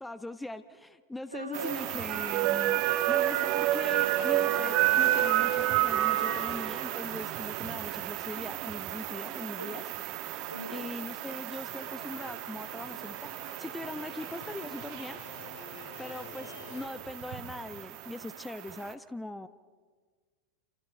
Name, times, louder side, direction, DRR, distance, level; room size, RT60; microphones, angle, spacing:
voice 1, 0.0-9.8 10.7-15.2 16.0-19.5, left 2 dB, 5° left, 13 dB, 0.9 m, -41 dB
voice 2, 1.3-1.8 9.6-9.7 10.5-10.9, right 1 dB, 85° right, 2 dB, 4.6 m, -39 dB
sound 1, 1.5-18.9, right 13 dB, 40° right, 1.4 m, -31 dB
sound 2, 11.6-16.9, left 6 dB, 55° left, 4.5 m, -50 dB
29.5 x 28.5 x 5.7 m, 1.5 s
figure-of-eight pair, 90°, 0 cm